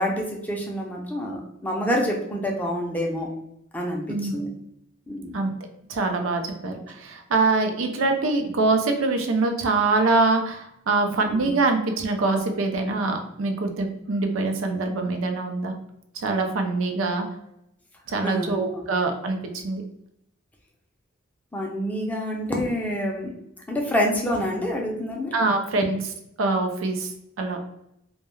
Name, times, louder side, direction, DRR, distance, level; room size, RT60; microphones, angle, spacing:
voice 1, 0.0-3.3 3.7-4.1 4.3-4.5 5.1-5.4 11.3-11.5 18.2-18.9 21.5-23.3 23.7-25.3, equal, 10° left, -1 dB, 0.4 m, -27 dB
voice 2, 4.1-4.5 5.3-5.5 5.9-15.7 16.2-17.3 18.1-19.8 25.3-26.0 26.4-27.1 27.4-27.6, right 3 dB, 85° right, 4 dB, 0.5 m, -24 dB
2.2 x 2.2 x 3.0 m, 0.80 s
head